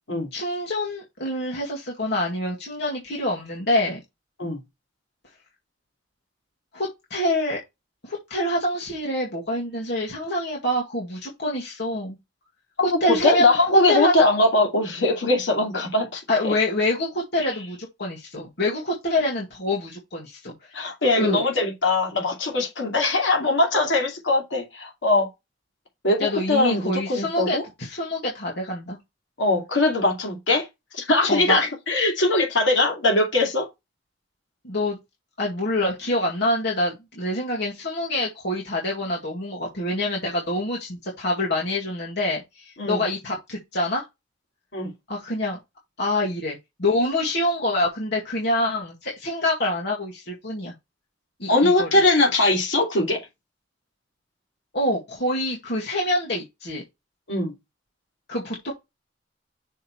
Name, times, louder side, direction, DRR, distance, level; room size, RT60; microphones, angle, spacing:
voice 1, 0.3-4.0 6.7-7.6 8.0-12.2 13.0-13.6 13.9-14.1 16.3-20.5 21.1-21.4 26.2-29.0 31.3-31.6 34.6-35.0 35.4-44.0 45.1-45.6 46.0-50.7 51.4-51.9 54.7-56.8 58.3-58.7, left 1 dB, 60° left, 1.9 m, -26 dB
voice 2, 12.8-16.5 20.7-25.3 26.0-27.6 29.4-30.7 30.9-33.7 42.8-43.0 44.7-44.9 51.5-53.3 57.3-57.5, left 2 dB, 80° left, 2.5 m, -21 dB
6.4 x 3.2 x 5.7 m
head